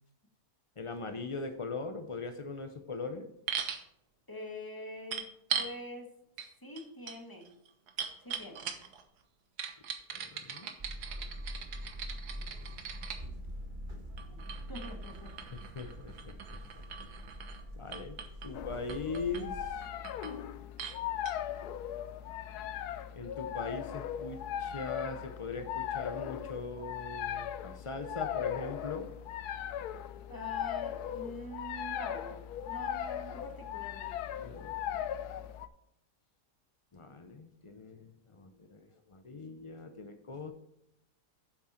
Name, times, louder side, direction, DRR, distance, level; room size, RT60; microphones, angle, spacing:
voice 1, 0.8-3.3 10.1-10.7 15.5-16.3 17.7-18.2 18.4-19.8 23.1-29.1 34.4-35.0 36.9-40.5, left 4 dB, 50° left, 7 dB, 0.3 m, -41 dB
sound 1, 3.5-3.8 5.1-5.7 6.4-6.5 6.8-9.0 9.6-13.2 14.2-17.6 17.9-18.5 18.9-19.4 19.8-20.4 20.8-21.0 21.3-21.4, right 7 dB, 75° right, 1.6 m, -40 dB
voice 2, 4.3-5.3 5.6-6.1 6.6-7.5 8.2-8.6 14.3-15.3 18.4-18.5 30.3-32.4 32.7-34.2, left 1 dB, 15° left, 2 dB, 1.8 m, -45 dB
sound 2, 10.8-19.7, equal, 35° right, 1.3 m, -44 dB
sound 3, 18.5-35.7, left 10 dB, 75° left, 1.1 m, -38 dB
9.3 x 7.5 x 4.4 m, 0.80 s
omnidirectional pair, 1.7 m